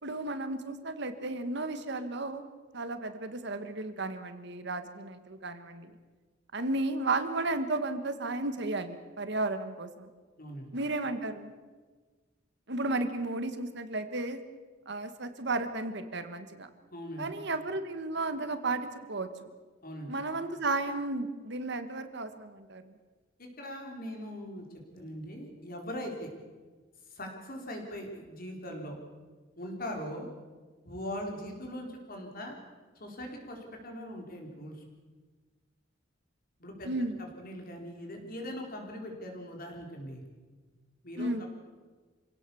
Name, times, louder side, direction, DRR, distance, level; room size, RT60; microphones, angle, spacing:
voice 1, 0.0-2.5 2.7-5.9 6.5-10.1 10.7-11.5 12.7-14.4 14.9-16.7 17.2-19.3 20.1-22.9 36.8-37.2 41.2-41.5, right 2 dB, 65° right, 9 dB, 1.7 m, -33 dB
voice 2, 16.9-17.3 19.8-20.2 23.4-26.3 27.1-28.9 29.6-30.3 30.8-32.5 33.0-34.8 36.6-40.2 41.0-41.5, equal, 50° left, 2 dB, 4.3 m, -41 dB
26.5 x 17.0 x 7.1 m, 1.4 s
head